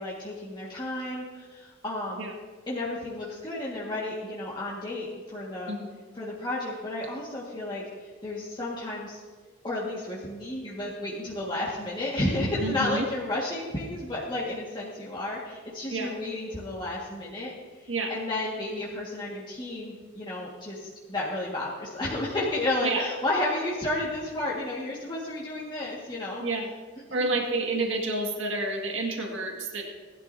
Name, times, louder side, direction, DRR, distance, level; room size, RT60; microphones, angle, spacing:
voice 1, 0.0-2.3 2.7-5.7 6.1-9.2 9.6-17.5 17.8-26.4 27.2-27.4, left 1 dB, 25° left, -7 dB, 1.8 m, -32 dB
voice 2, 5.7-6.0 12.6-13.1 15.9-16.1 17.9-18.1 22.8-23.0 26.4-26.7 27.1-29.8, right 2 dB, 70° right, 1 dB, 2.1 m, -29 dB
19.0 x 12.0 x 2.7 m, 1.5 s
head